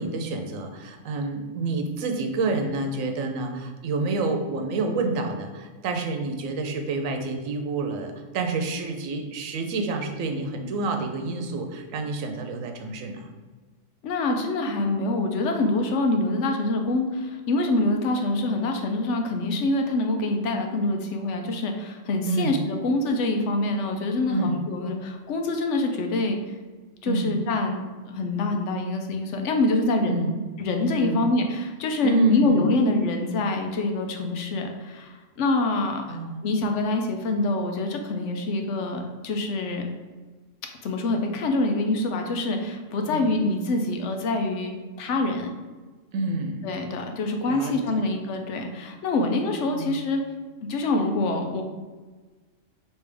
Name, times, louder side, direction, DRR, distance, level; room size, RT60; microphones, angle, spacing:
voice 1, 0.0-13.3 22.3-22.6 24.3-24.6 27.0-27.3 30.1-30.3 31.0-31.2 32.0-32.6 36.1-36.5 43.0-43.3 46.1-46.6 47.4-47.8 49.7-50.0, right 3 dB, 90° right, 4 dB, 1.1 m, -28 dB
voice 2, 14.0-26.5 27.0-30.3 30.6-36.2 36.4-39.9 40.8-45.5 46.6-50.2 50.6-51.6, left 2 dB, 70° left, 3 dB, 0.9 m, -25 dB
4.9 x 3.1 x 3.4 m, 1.3 s
omnidirectional pair, 1.3 m